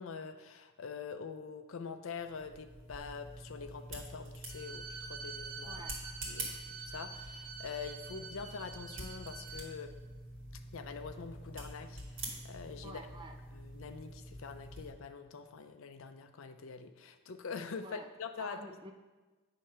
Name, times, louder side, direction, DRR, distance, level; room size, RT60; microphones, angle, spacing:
voice 1, 0.0-5.8 6.3-9.9 10.7-13.0 13.5-18.6, left 5 dB, 65° left, 8 dB, 0.5 m, -45 dB
sound 1, 2.2-14.9, right 1 dB, 60° right, 1.7 m, -47 dB
Bowed string instrument, 4.5-9.7, right 5 dB, 80° right, 0.7 m, -47 dB
voice 2, 5.7-6.0 12.8-13.4 17.8-18.1 18.4-18.9, right 2 dB, 20° right, 5 dB, 0.4 m, -48 dB
8.3 x 3.2 x 5.5 m, 1.2 s
head